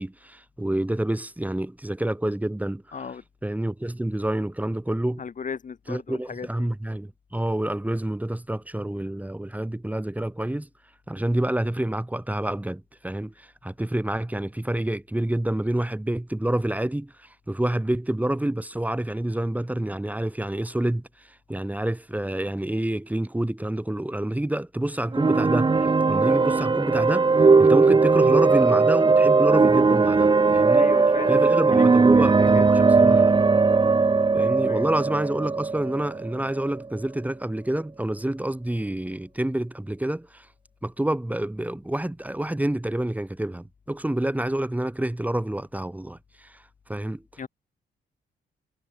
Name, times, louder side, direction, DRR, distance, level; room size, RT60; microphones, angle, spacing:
voice 1, 0.0-3.1 3.4-5.2 5.9-10.7 11.1-30.9 31.3-33.4 34.3-40.5 40.8-46.6 46.9-47.2, right 1 dB, 10° right, 2.2 m, -28 dB
voice 2, 2.9-3.2 5.2-6.7 30.7-33.0 34.3-34.9 47.4-47.5, left 6 dB, 45° left, 1.9 m, -36 dB
sound 1, 25.1-36.8, right 4 dB, 25° right, 1.0 m, -19 dB
cardioid pair, 95°, 19 cm